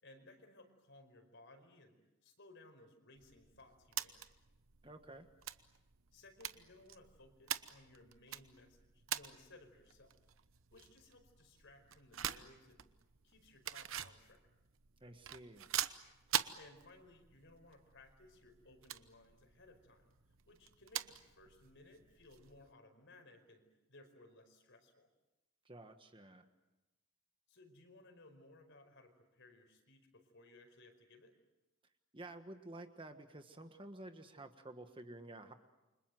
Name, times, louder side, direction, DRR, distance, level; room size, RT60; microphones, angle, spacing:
voice 1, 0.0-2.0 2.2-4.2 6.1-10.1 10.7-12.8 13.2-14.4 16.6-20.2 20.5-25.1 27.5-31.3, left 2 dB, 55° left, 6 dB, 5.0 m, -61 dB
sound 1, 3.2-22.7, right 10 dB, 60° right, 1.0 m, -46 dB
voice 2, 4.8-5.3 15.0-15.7 25.6-26.5 32.1-35.5, right 2 dB, 25° right, 7 dB, 1.4 m, -51 dB
29.0 x 25.5 x 7.8 m, 1.0 s
head